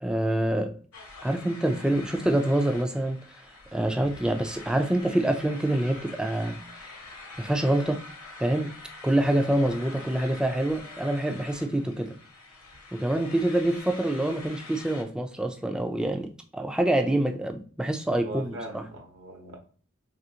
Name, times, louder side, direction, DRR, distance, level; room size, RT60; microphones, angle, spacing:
voice 1, 0.0-0.8 1.2-3.2 3.7-6.6 7.4-8.0 8.4-8.7 9.0-12.1 12.9-18.8, right 1 dB, 5° right, 0.3 m, -26 dB
sound 1, 0.9-15.0, left 3 dB, 70° left, 0.8 m, -45 dB
voice 2, 18.2-19.6, right 1 dB, 60° right, 0.8 m, -40 dB
3.4 x 2.4 x 2.8 m
head